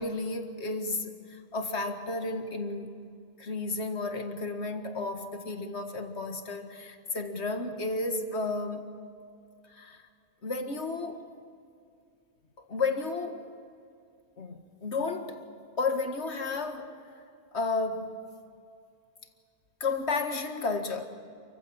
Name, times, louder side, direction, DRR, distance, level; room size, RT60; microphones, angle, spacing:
voice 1, 0.0-3.0 3.4-8.9 9.7-10.0 10.4-11.2 12.6-13.5 14.4-15.4 15.8-16.9 17.5-18.2 19.8-21.1, left 3 dB, 85° left, 2.1 m, -32 dB
29.0 x 15.5 x 8.7 m
omnidirectional pair, 1.1 m